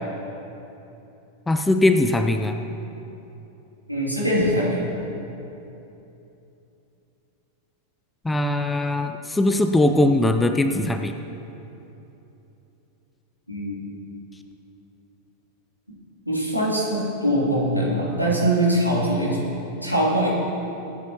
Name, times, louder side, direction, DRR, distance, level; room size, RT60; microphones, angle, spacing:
voice 1, 1.5-2.6 8.2-11.1, left 1 dB, 10° left, 7 dB, 0.6 m, -20 dB
voice 2, 3.9-4.8 13.5-13.9 16.2-19.5 19.8-20.3, right 1 dB, 90° left, -5 dB, 3.1 m, -22 dB
22.5 x 10.5 x 3.0 m, 3.0 s
figure-of-eight pair, 90°, 0 cm